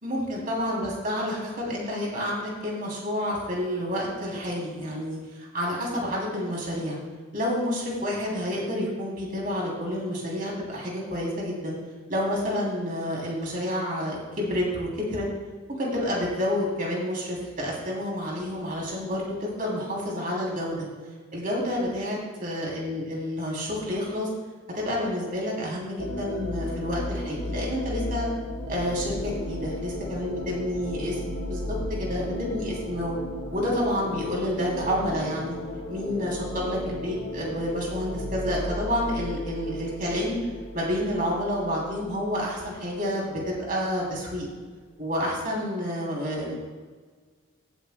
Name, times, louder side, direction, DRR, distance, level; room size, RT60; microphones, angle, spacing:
voice 1, 0.0-7.0 7.3-11.8 12.1-15.3 15.7-20.9 21.3-24.3 24.7-28.3 28.7-33.2 33.5-35.6 35.9-40.4 40.7-44.4 45.0-46.5, equal, 45° right, -3 dB, 3.0 m, -29 dB
sound 1, 26.0-43.5, left 1 dB, 80° left, 1.5 m, -35 dB
16.5 x 8.5 x 2.2 m, 1.5 s
head